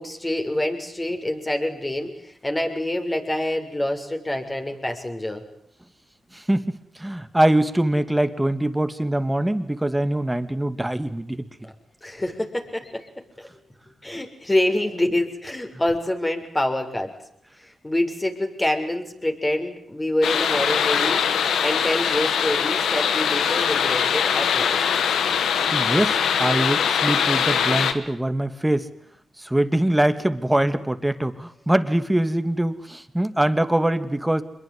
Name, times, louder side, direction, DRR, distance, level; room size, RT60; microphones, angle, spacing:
voice 1, 0.0-5.4 12.0-13.1 13.4-13.5 14.0-17.1 17.6-21.3 21.6-24.8, left 1 dB, 20° left, 4 dB, 7.0 m, -26 dB
voice 2, 6.3-11.7 25.7-28.9 29.4-34.4, right 1 dB, 10° right, 11 dB, 2.8 m, -23 dB
sound 1, 20.2-27.9, left 7 dB, 90° left, 2.2 m, -22 dB
26.5 x 22.0 x 9.9 m, 0.70 s
cardioid pair, 60°, 0 cm